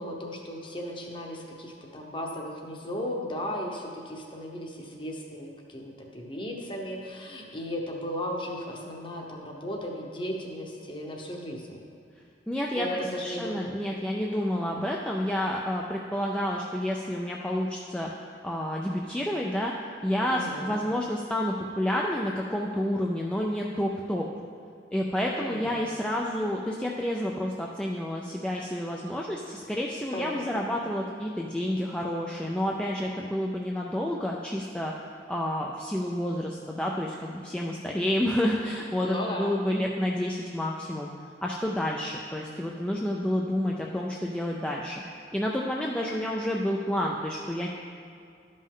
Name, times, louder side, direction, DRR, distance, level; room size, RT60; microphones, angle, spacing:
voice 1, 0.0-11.8 12.8-13.7 14.2-14.8 20.3-20.8 25.3-25.7 30.1-30.7 39.0-39.5, equal, 30° left, 0 dB, 0.9 m, -36 dB
voice 2, 12.5-12.9 13.2-18.1 18.4-19.7 20.0-24.3 24.9-34.9 35.3-41.1 41.4-47.7, left 1 dB, 5° left, -2 dB, 0.3 m, -29 dB
12.0 x 5.3 x 3.7 m, 2.3 s
head